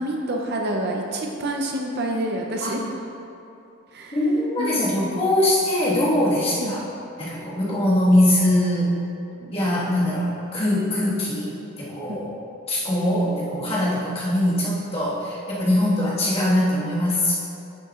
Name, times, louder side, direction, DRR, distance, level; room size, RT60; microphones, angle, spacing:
voice 1, 0.0-2.8 3.9-4.2 4.6-4.8 6.6-6.8 9.4-9.5 12.1-12.2, right 1 dB, 50° right, 1 dB, 0.6 m, -27 dB
voice 2, 2.6-2.9 4.1-6.8 7.2-9.0 9.5-12.3 12.7-17.3, left 1 dB, 25° left, -8 dB, 1.6 m, -22 dB
10.0 x 7.0 x 2.4 m, 2.8 s
head